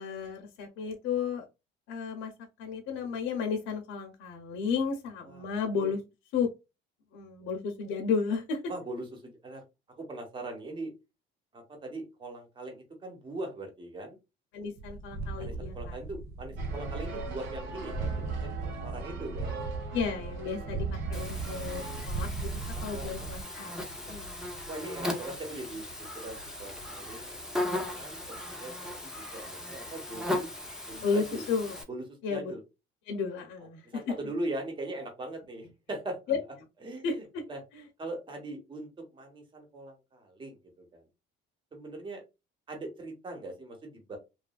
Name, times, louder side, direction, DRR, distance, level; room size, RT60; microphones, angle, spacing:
voice 1, 0.0-1.5 1.9-2.3 2.6-6.0 6.3-6.5 7.1-8.6 14.5-16.0 19.9-22.5 22.8-23.7 24.0-24.3 31.0-31.8 32.2-32.5 33.1-34.0 36.3-36.4 37.0-37.4 37.7-37.8, left 5 dB, 75° left, 2 dB, 0.7 m, -33 dB
voice 2, 8.7-9.6 10.0-10.9 11.5-14.2 15.4-18.3 18.6-19.6 22.9-23.3 24.1-24.2 24.7-25.8 26.1-27.5 27.8-30.5 30.9-31.4 31.9-32.0 32.3-32.6 33.8-36.2 36.8-37.6 38.0-41.0 41.7-42.2 42.7-44.2, right 2 dB, 25° right, 2 dB, 1.0 m, -40 dB
sound 1, 14.8-23.4, right 4 dB, 50° right, 0.6 m, -37 dB
sound 2, 16.6-22.0, right 3 dB, 75° right, 1.4 m, -43 dB
Buzz, 21.1-31.8, left 1 dB, 5° right, 0.7 m, -37 dB
3.0 x 2.4 x 2.2 m, 0.25 s
cardioid pair, 140°, 20 cm